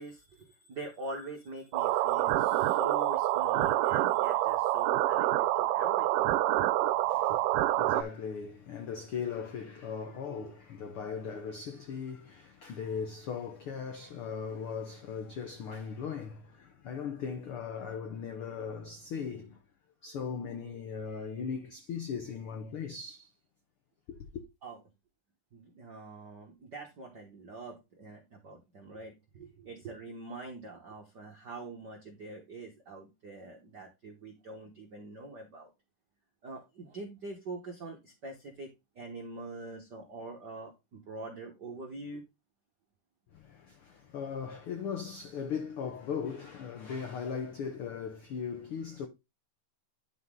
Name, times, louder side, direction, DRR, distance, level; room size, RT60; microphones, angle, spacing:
voice 1, 0.0-6.3 7.3-7.4 10.3-10.5 11.3-11.5 24.6-24.8 25.5-35.7 36.4-38.7 39.0-42.2, right 3 dB, 70° right, 1.0 m, -44 dB
sound 1, 1.7-8.0, right 14 dB, 85° right, 2.2 m, -27 dB
voice 2, 6.9-19.6 20.0-23.3 24.1-24.4 43.3-49.1, left 6 dB, 85° left, 1.2 m, -38 dB
11.0 x 4.1 x 3.7 m
omnidirectional pair, 3.7 m